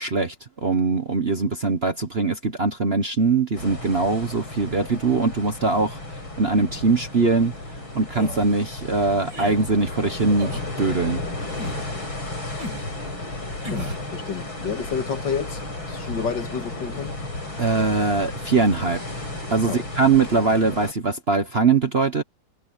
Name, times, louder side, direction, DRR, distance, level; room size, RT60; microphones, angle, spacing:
voice 1, 0.0-6.0 6.4-7.5 7.9-11.2 17.6-19.0 19.5-22.2, right 4 dB, 35° right, 1.1 m, -22 dB
sound 1, 3.6-20.9, left 2 dB, 85° left, 9.1 m, -34 dB
sound 2, 8.1-8.5 9.3-9.6 10.4-10.7 11.5-11.9 12.6-12.9 13.6-14.0, right 1 dB, 55° right, 8.1 m, -34 dB
voice 2, 13.7-15.6 15.9-17.2 19.6-19.8, left 6 dB, 65° left, 2.5 m, -30 dB
omnidirectional pair, 2.2 m